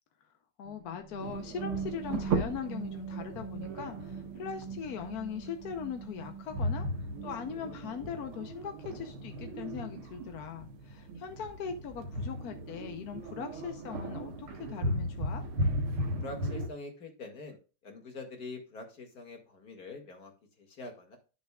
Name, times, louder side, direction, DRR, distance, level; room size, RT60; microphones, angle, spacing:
voice 1, 0.6-6.9 7.2-15.4, left 7 dB, 60° left, 6 dB, 1.0 m, -40 dB
sound 1, 0.6-8.4, right 6 dB, 5° right, 1.0 m, -43 dB
sound 2, 1.2-16.7, right 1 dB, 75° right, 2.3 m, -37 dB
voice 2, 16.2-20.3 20.6-21.2, left 3 dB, 45° left, 3 dB, 2.4 m, -45 dB
12.0 x 6.7 x 2.3 m, 0.33 s
omnidirectional pair, 2.4 m